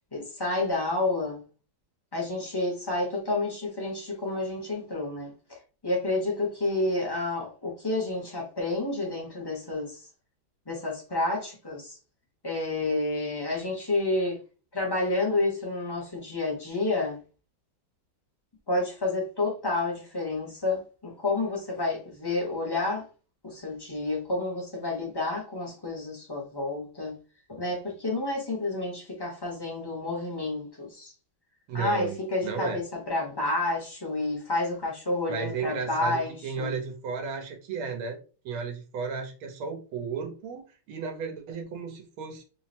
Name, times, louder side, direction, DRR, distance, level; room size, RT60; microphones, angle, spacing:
voice 1, 0.1-1.4 2.1-5.3 5.8-10.0 10.7-12.0 12.4-14.4 14.7-17.2 18.7-23.1 23.4-27.2 27.5-31.1 31.7-36.7, left 2 dB, 30° left, 0.4 m, -30 dB
voice 2, 31.7-32.8 35.3-38.2 38.4-42.4, right 5 dB, 90° right, 1.7 m, -34 dB
3.8 x 2.0 x 4.2 m
omnidirectional pair, 2.2 m